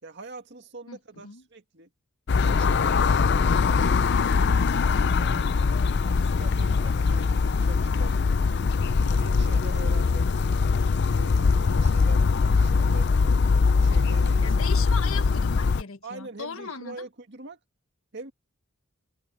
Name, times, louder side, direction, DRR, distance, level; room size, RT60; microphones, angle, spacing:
voice 1, 0.0-1.9 2.4-3.6 4.2-5.8 6.1-8.1 8.9-10.3 11.0-13.1 13.7-14.7 16.0-17.6 18.1-18.3, right 2 dB, 55° right, 2.1 m, -43 dB
voice 2, 0.9-1.4 14.4-17.1, left 5 dB, 75° left, 1.5 m, -38 dB
sound 1, 2.3-15.8, left 4 dB, 50° left, 0.4 m, -22 dB
head